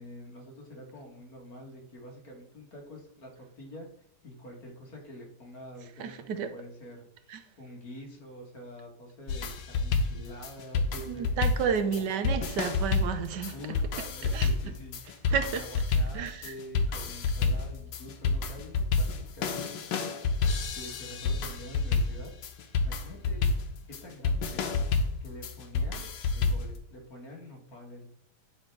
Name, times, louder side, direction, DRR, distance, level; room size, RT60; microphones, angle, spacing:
voice 1, 0.0-3.9 4.2-6.3 6.5-11.3 11.8-12.1 13.4-19.7 20.5-22.3 22.8-23.5 23.9-24.8 25.2-26.0 26.3-28.1, left 1 dB, 55° left, 2.2 m, -46 dB
voice 2, 6.0-6.5 7.3-7.4 11.1-13.5 14.3-14.5 15.3-15.6 16.1-16.5, right 7 dB, 75° right, 1.3 m, -31 dB
sound 1, 9.3-26.8, left 4 dB, 90° left, 1.5 m, -29 dB
9.6 x 3.5 x 4.6 m
omnidirectional pair, 1.9 m